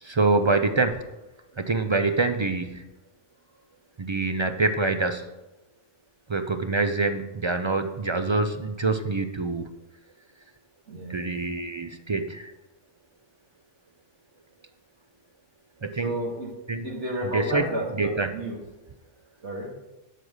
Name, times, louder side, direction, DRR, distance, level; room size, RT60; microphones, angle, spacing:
voice 1, 0.0-1.0 1.6-2.8 4.0-5.3 6.3-9.7 11.1-12.5 15.8-16.1 16.7-16.9 17.3-17.7 18.0-18.3, right 3 dB, 45° right, 7 dB, 0.3 m, -25 dB
voice 2, 10.9-11.3 16.0-16.5 16.8-18.6 19.4-19.7, right 1 dB, 70° right, -1 dB, 2.2 m, -31 dB
12.0 x 5.0 x 6.4 m, 1.0 s
omnidirectional pair, 1.3 m